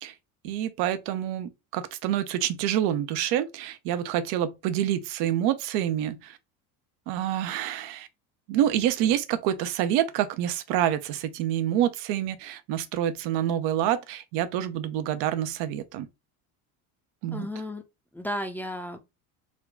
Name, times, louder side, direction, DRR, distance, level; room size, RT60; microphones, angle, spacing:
voice 1, 0.4-6.4 7.1-8.1 8.5-16.1 17.2-17.5, right 11 dB, 65° right, 0.7 m, -27 dB
voice 2, 17.3-17.8 18.1-19.1, left 1 dB, 5° left, 0.6 m, -33 dB
3.6 x 2.3 x 3.6 m
hypercardioid pair, 85°, 43 cm